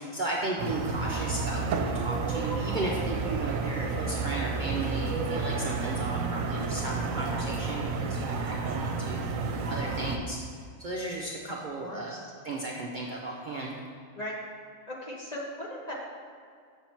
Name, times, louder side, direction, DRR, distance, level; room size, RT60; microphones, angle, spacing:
voice 1, 0.0-9.2 9.7-10.4 10.8-12.2 12.4-13.8, right 2 dB, 50° right, -3 dB, 0.6 m, -35 dB
sound 1, 0.6-10.2, right 4 dB, 75° right, 1.0 m, -31 dB
voice 2, 11.8-12.3 14.2-14.4 14.9-15.9, left 1 dB, 35° left, -3 dB, 0.8 m, -38 dB
6.3 x 5.7 x 4.4 m, 2.2 s
omnidirectional pair, 1.4 m